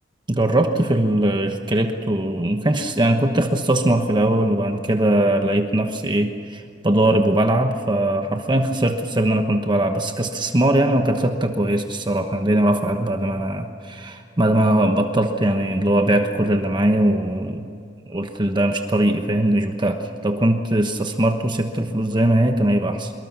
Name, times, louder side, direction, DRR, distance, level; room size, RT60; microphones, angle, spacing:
voice 1, 0.3-17.7 18.1-23.1, right 1 dB, 25° right, 5 dB, 1.2 m, -20 dB
24.5 x 22.5 x 6.0 m, 2.5 s
head